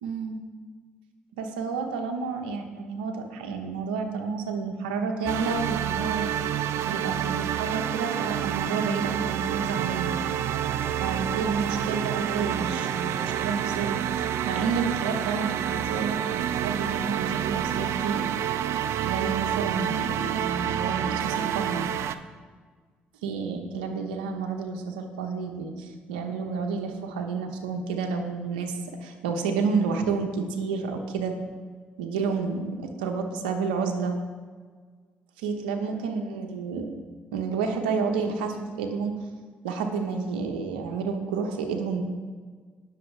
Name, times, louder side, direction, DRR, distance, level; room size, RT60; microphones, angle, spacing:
voice 1, 0.0-0.4 1.4-6.3 6.9-10.2 11.0-18.2 19.0-21.9 23.2-31.3 32.0-34.2 35.4-36.9 37.3-39.1 39.6-42.0, right 5 dB, 85° right, 4 dB, 1.1 m, -30 dB
sound 1, 5.3-22.2, right 10 dB, 65° right, 0.5 m, -28 dB
19.0 x 6.7 x 3.4 m, 1.6 s
hypercardioid pair, 50°, 5 cm